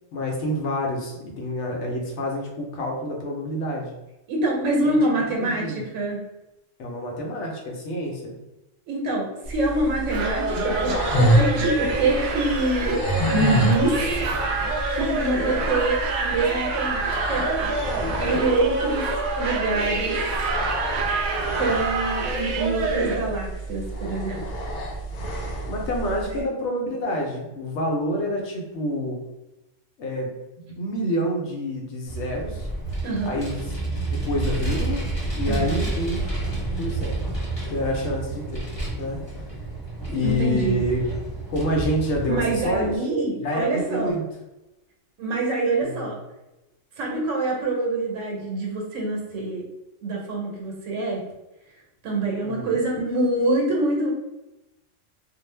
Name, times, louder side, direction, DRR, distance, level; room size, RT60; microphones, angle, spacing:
voice 1, 0.1-3.9 4.8-5.0 5.3-5.8 6.8-8.3 25.7-29.2 30.0-30.3 30.8-32.7 33.2-33.6 34.1-35.1 35.4-36.2 36.8-37.2 37.7-38.6 39.0-39.2 40.1-41.0 41.5-42.9 43.4-44.2 45.8-46.1 52.4-52.7, equal, 70° left, -1 dB, 0.8 m, -27 dB
voice 2, 4.3-6.2 8.9-14.1 14.9-17.5 18.2-20.2 21.6-24.4 26.3-26.5 33.0-33.4 35.5-35.9 40.2-40.8 42.2-44.1 45.2-46.2 47.0-49.6 50.0-51.2 52.0-54.1, right 2 dB, 85° right, -1 dB, 1.0 m, -25 dB
sound 1, 9.4-26.4, right 1 dB, 85° left, 0.3 m, -28 dB
sound 2, 10.1-23.2, right 2 dB, 60° right, 0.5 m, -27 dB
Vehicle, 32.1-43.0, right 2 dB, 25° left, 0.8 m, -30 dB
2.4 x 2.0 x 3.1 m, 0.97 s
omnidirectional pair, 1.3 m